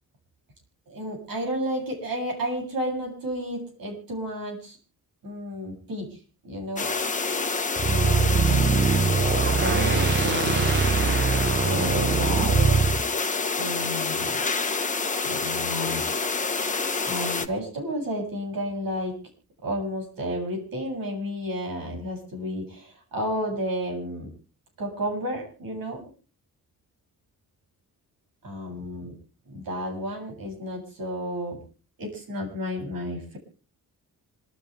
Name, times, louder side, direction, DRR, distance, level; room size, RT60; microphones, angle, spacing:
voice 1, 0.9-4.8 5.2-6.2 6.4-6.9 7.8-8.8 9.4-10.8 11.7-12.8 13.6-14.4 15.2-16.0 16.5-16.6 17.1-19.2 19.6-24.3 24.8-26.1 28.4-29.1 29.5-31.6 32.0-33.4, equal, 70° right, 2 dB, 7.9 m, -32 dB
sound 1, 6.8-17.5, left 4 dB, 20° left, 1.3 m, -27 dB
sound 2, 7.8-13.0, right 5 dB, 30° right, 0.9 m, -22 dB
27.5 x 13.0 x 3.4 m, 0.37 s
wide cardioid pair, 155°, 35 cm